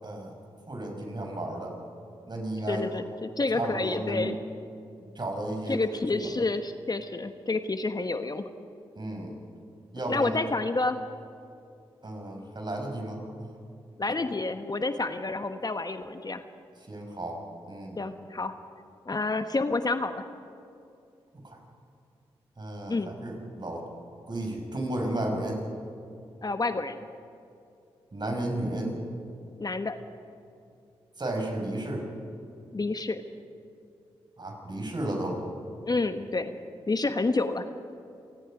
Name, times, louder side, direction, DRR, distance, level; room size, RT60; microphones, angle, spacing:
voice 1, 0.0-0.3 0.7-1.7 2.3-3.0 3.5-4.3 5.0-5.8 6.1-6.2 9.0-9.3 9.9-10.4 12.0-13.5 16.9-18.0 21.4-21.6 22.6-23.9 24.3-25.6 28.1-28.9 31.2-32.1 34.4-35.4, right 1 dB, 40° right, 2 dB, 6.0 m, -33 dB
voice 2, 2.7-4.4 5.7-8.4 10.1-11.0 14.0-16.4 18.0-18.5 19.1-20.2 22.9-23.1 26.4-27.1 29.6-29.9 32.7-33.2 35.8-36.5 36.9-37.7, left 3 dB, 35° left, 8 dB, 1.2 m, -29 dB
27.5 x 19.0 x 5.1 m, 2.6 s
supercardioid pair, 40°, 11 cm